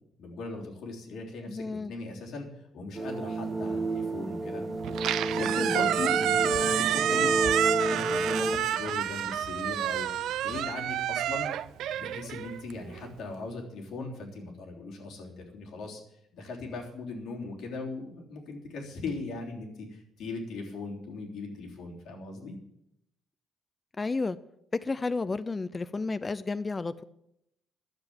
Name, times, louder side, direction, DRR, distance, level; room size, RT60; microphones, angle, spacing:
voice 1, 0.2-2.5 2.7-4.6 5.3-7.4 7.9-10.1 10.4-11.5 12.0-16.0 16.3-22.6, left 3 dB, 60° left, -1 dB, 3.5 m, -39 dB
voice 2, 1.5-1.9 24.0-24.4 24.7-27.0, left 3 dB, 20° left, 14 dB, 0.4 m, -31 dB
sound 1, 2.9-8.6, right 2 dB, 15° right, 1.8 m, -30 dB
Squeak, 4.8-13.1, right 11 dB, 75° right, 0.5 m, -29 dB
12.0 x 7.7 x 8.7 m, 0.79 s
cardioid pair, 160°, 0 cm